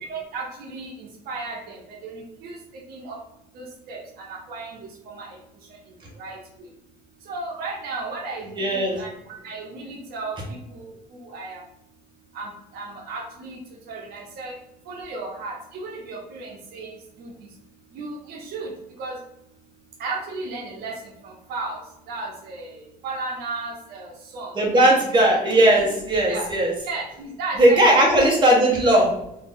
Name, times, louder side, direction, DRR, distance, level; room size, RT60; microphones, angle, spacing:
voice 1, 0.1-2.6 2.9-3.2 3.5-4.8 5.1-5.4 6.2-6.4 7.3-11.6 12.3-13.6 13.8-14.6 14.9-17.3 17.9-18.7 19.0-19.2 20.0-21.8 22.1-24.5 26.3-26.5 26.8-27.8 28.1-28.2, right 3 dB, 75° right, -2 dB, 0.9 m, -34 dB
voice 2, 8.5-9.0 24.5-26.7 27.6-29.1, right 1 dB, 30° right, -3 dB, 1.2 m, -17 dB
2.9 x 2.7 x 3.8 m, 0.81 s
cardioid pair, 125°, 16 cm